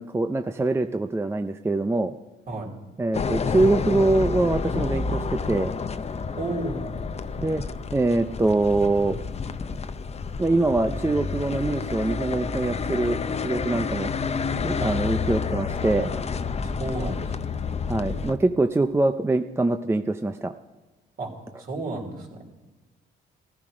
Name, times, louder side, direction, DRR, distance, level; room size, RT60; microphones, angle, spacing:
voice 1, 0.0-2.1 3.0-5.8 7.4-7.6 7.9-9.2 10.4-13.2 13.4-14.1 14.6-16.2 17.9-20.5, right 2 dB, 10° right, 8 dB, 0.5 m, -24 dB
sound 1, 3.1-18.3, left 5 dB, 30° left, 0.6 m, -29 dB
voice 2, 6.4-6.9 14.8-14.9 16.8-17.3 21.2-21.3 21.6-22.4, right 2 dB, 50° right, 0 dB, 3.3 m, -31 dB
15.0 x 12.0 x 5.0 m, 1.2 s
cardioid pair, 90°, 20 cm